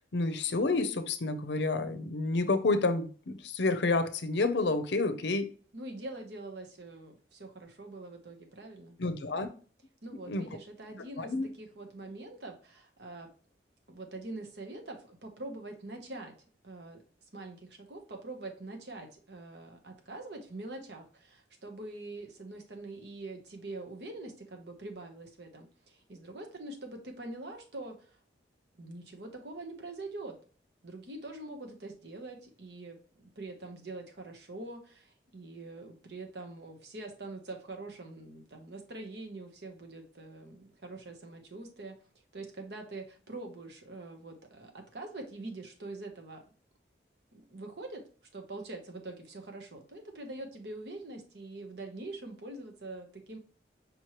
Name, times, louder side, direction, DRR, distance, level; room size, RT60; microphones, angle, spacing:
voice 1, 0.1-5.5 9.0-9.5 10.3-10.5 11.2-11.5, left 3 dB, 70° left, 10 dB, 0.6 m, -29 dB
voice 2, 5.7-9.0 10.0-13.3 13.9-16.3 16.6-17.0 17.3-28.2 28.8-30.4 30.8-42.0 42.3-46.4 47.3-48.0 48.3-53.4, right 2 dB, 65° right, 3 dB, 1.0 m, -44 dB
5.2 x 3.0 x 3.0 m, 0.40 s
head